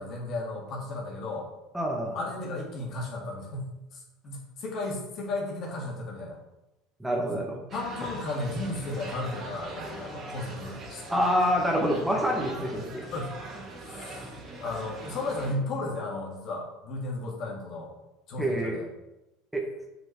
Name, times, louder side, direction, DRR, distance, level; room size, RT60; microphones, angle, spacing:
voice 1, 0.0-1.5 2.1-6.4 7.7-11.0 13.1-13.4 13.8-14.3 14.6-17.9 18.3-18.9, left 2 dB, 50° left, -1 dB, 2.1 m, -34 dB
voice 2, 1.7-2.2 7.0-7.6 11.1-13.1 18.4-18.8 19.5-19.6, equal, 5° right, 0 dB, 1.5 m, -26 dB
sound 1, 7.7-15.5, right 2 dB, 40° right, 2.3 m, -41 dB
7.6 x 5.1 x 3.3 m, 0.97 s
hypercardioid pair, 75°, 0 cm